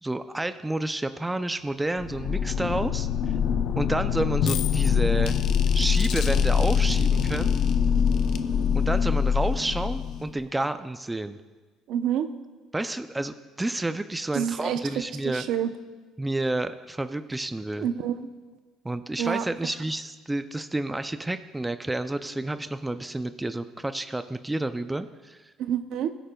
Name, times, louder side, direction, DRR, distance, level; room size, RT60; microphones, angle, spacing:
voice 1, 0.0-3.1 3.8-5.4 5.7-7.5 8.7-11.4 12.7-15.4 16.2-17.9 18.8-25.5, right 2 dB, 10° right, 10 dB, 0.4 m, -30 dB
sound 1, 1.9-10.5, left 7 dB, 60° left, 0.7 m, -24 dB
voice 2, 11.9-12.3 14.3-15.7 17.8-18.3 19.2-19.5 25.6-26.1, right 9 dB, 65° right, 9 dB, 0.7 m, -28 dB
21.5 x 10.0 x 2.3 m, 1.3 s
cardioid pair, 125°, 0 cm